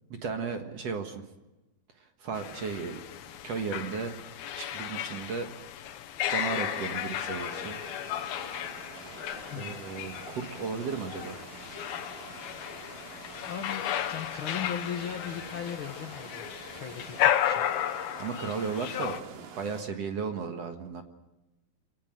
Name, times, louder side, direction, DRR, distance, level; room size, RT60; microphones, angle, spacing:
voice 1, 0.2-1.2 2.2-3.0 3.4-4.2 4.5-5.5 6.3-7.8 9.6-11.4 18.2-19.2 19.6-21.0, right 5 dB, 55° right, 5 dB, 2.2 m, -34 dB
sound 1, 2.3-19.2, left 11 dB, 90° left, 3.0 m, -34 dB
sound 2, 6.5-19.8, right 6 dB, 70° right, 3.5 m, -47 dB
voice 2, 13.5-17.7, left 8 dB, 65° left, 6 dB, 1.3 m, -38 dB
25.5 x 18.0 x 7.8 m, 1.0 s
omnidirectional pair, 4.2 m